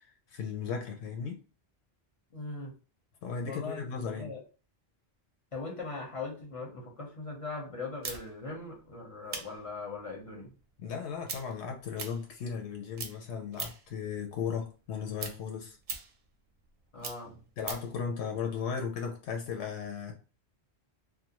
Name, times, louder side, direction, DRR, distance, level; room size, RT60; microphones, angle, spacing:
voice 1, 0.0-1.4 3.2-4.3 10.8-15.8 17.6-20.1, left 6 dB, 85° left, 3 dB, 0.9 m, -36 dB
voice 2, 2.3-2.7 3.4-4.4 5.5-10.5 16.9-17.4, left 3 dB, 35° left, -1 dB, 0.7 m, -40 dB
sound 1, 8.0-12.7 12.9-14.0 14.3-18.0, right 5 dB, 55° right, 0.5 m, -42 dB
2.4 x 2.1 x 2.8 m, 0.34 s
omnidirectional pair, 1.1 m